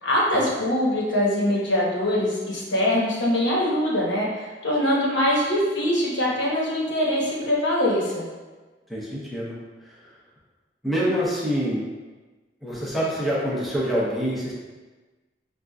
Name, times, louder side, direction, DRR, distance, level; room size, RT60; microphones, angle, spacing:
voice 1, 0.0-8.3, left 1 dB, 90° left, -5 dB, 1.2 m, -23 dB
voice 2, 8.9-9.5 9.9-10.0 10.8-11.9 12.6-14.5, equal, ahead, -8 dB, 0.8 m, -26 dB
6.3 x 2.5 x 2.3 m, 1.3 s
head